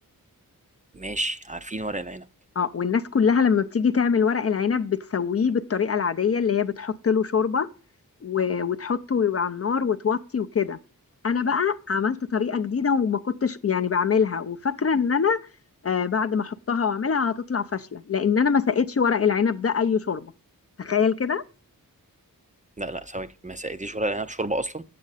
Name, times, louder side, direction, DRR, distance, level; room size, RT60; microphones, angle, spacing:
voice 1, 0.9-2.3 22.8-24.8, right 1 dB, 20° right, 0.4 m, -30 dB
voice 2, 2.6-7.7 8.2-10.8 11.2-15.4 15.8-20.3 20.8-21.4, left 6 dB, 45° left, 0.5 m, -24 dB
8.1 x 7.6 x 4.0 m
wide cardioid pair, 80°, 35 cm